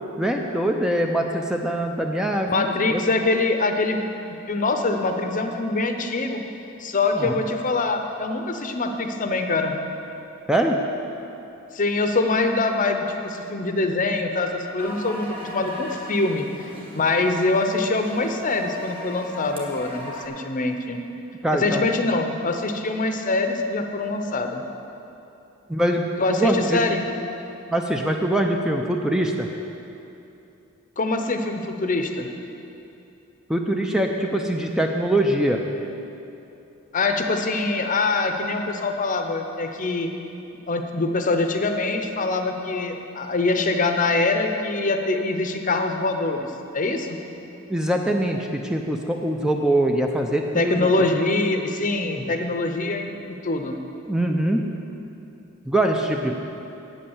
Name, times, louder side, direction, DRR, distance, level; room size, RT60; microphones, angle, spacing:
voice 1, 0.2-3.0 7.2-7.4 10.5-10.8 21.4-21.9 25.7-26.8 27.7-29.5 33.5-35.6 47.7-50.9 52.0-52.3 54.1-54.6 55.7-56.4, right 1 dB, 5° right, 2 dB, 0.5 m, -23 dB
voice 2, 2.5-4.1 4.5-6.4 6.8-9.7 11.7-21.0 21.5-24.6 26.2-27.1 31.0-32.3 36.9-40.1 40.7-46.5 46.7-47.2 50.5-53.8 56.3-56.4, left 3 dB, 40° left, 5 dB, 0.7 m, -24 dB
sound 1, 14.8-20.3, left 1 dB, 25° right, 1.3 m, -38 dB
8.8 x 8.6 x 7.1 m, 2.8 s
head